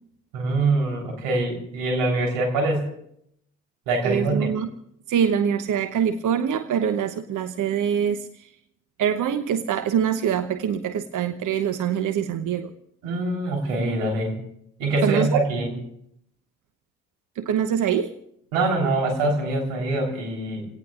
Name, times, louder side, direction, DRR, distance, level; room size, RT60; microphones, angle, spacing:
voice 1, 0.3-2.9 3.9-4.6 13.0-14.4 14.8-15.7 18.5-20.7, right 2 dB, 80° right, 1 dB, 4.0 m, -24 dB
voice 2, 4.0-4.7 5.1-8.5 9.0-12.7 15.0-15.4 17.4-18.1, right 8 dB, 50° right, 11 dB, 0.9 m, -24 dB
29.0 x 18.0 x 2.5 m, 0.74 s
hypercardioid pair, 45°, 38 cm